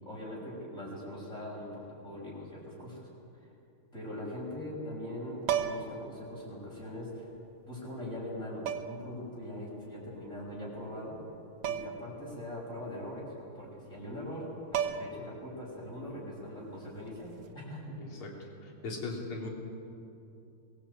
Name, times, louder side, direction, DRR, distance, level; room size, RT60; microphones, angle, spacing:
voice 1, 0.0-3.1 3.9-7.3 7.7-11.2 11.7-18.3, left 1 dB, 35° left, -6 dB, 6.8 m, -41 dB
sound 1, 5.4-6.0 7.4-7.5 8.7-9.1 11.6-12.1 12.4-12.5 14.3-14.4 14.7-15.3 17.3-17.5, right 9 dB, 85° right, 2.0 m, -33 dB
voice 2, 18.0-19.5, left 3 dB, 80° left, 0 dB, 3.9 m, -39 dB
23.0 x 17.5 x 8.9 m, 2.6 s
omnidirectional pair, 2.3 m